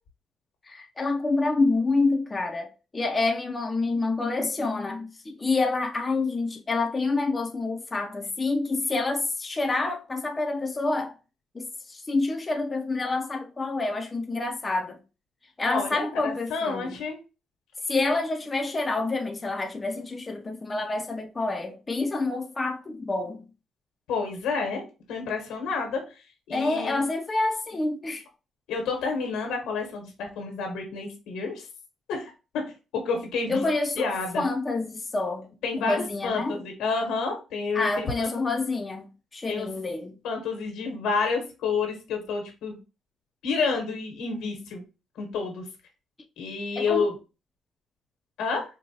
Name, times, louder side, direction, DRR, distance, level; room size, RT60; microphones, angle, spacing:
voice 1, 0.6-11.1 11.5-15.0 15.6-17.0 17.9-23.5 26.5-28.2 33.5-35.5 35.8-36.6 37.7-40.2 46.8-47.1, left 3 dB, 25° left, 0.5 m, -28 dB
voice 2, 15.6-17.2 24.1-24.8 25.1-26.0 26.5-27.0 28.7-31.7 32.1-32.6 32.9-33.6 33.9-34.4 35.6-38.3 39.5-39.7 40.2-42.8 43.4-44.8 45.2-45.6 46.4-47.1 48.4-48.6, left 4 dB, 90° left, 1.3 m, -29 dB
4.5 x 2.2 x 2.7 m
cardioid pair, 90°, 0 cm